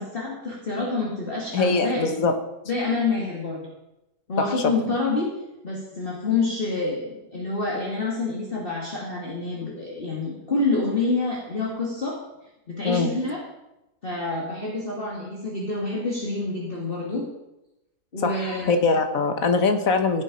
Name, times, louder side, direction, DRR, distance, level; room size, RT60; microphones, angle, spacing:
voice 1, 0.0-2.0 2.7-3.6 4.3-5.3 5.6-12.2 12.7-13.4 14.0-17.3 18.1-18.8, left 3 dB, 35° left, -3 dB, 2.2 m, -27 dB
voice 2, 1.5-2.3 4.4-4.5 12.8-13.1 18.2-20.2, left 4 dB, 60° left, 7 dB, 1.5 m, -22 dB
16.0 x 8.4 x 5.2 m, 0.95 s
omnidirectional pair, 1.7 m